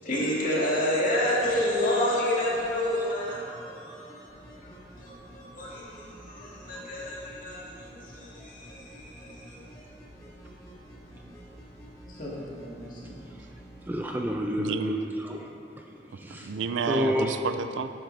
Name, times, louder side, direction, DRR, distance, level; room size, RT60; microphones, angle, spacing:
voice 1, 0.0-3.6 4.6-4.7 5.0-5.1 5.5-9.6 12.1-13.2, left 1 dB, 45° left, -6 dB, 2.0 m, -29 dB
sound 1, 1.3-13.9 14.2-14.3, equal, 20° left, 2.2 m, -49 dB
voice 2, 13.9-15.4 16.3-16.4 16.9-17.3, equal, 10° right, 1 dB, 0.4 m, -28 dB
voice 3, 14.6-15.0 16.3-17.9, right 5 dB, 90° right, 10 dB, 0.4 m, -30 dB
10.0 x 8.1 x 3.3 m, 2.6 s
head